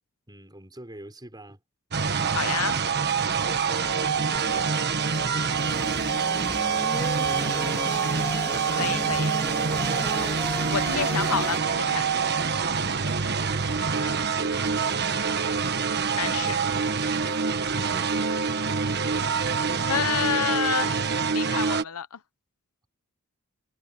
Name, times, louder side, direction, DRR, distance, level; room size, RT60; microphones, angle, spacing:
voice 1, 0.3-1.6 3.1-7.7 12.8-13.7 14.0-15.1 17.0-18.4, right 1 dB, 20° right, 5.9 m, -48 dB
sound 1, 1.9-21.8, right 5 dB, 50° right, 1.3 m, -26 dB
voice 2, 2.3-2.8 8.7-9.3 10.7-12.1 14.0-14.1 16.1-16.6 18.1-18.2 19.9-21.0 21.3-22.2, left 7 dB, 75° left, 0.8 m, -29 dB
sound 2, 4.3-11.6, left 1 dB, 10° left, 3.2 m, -37 dB
head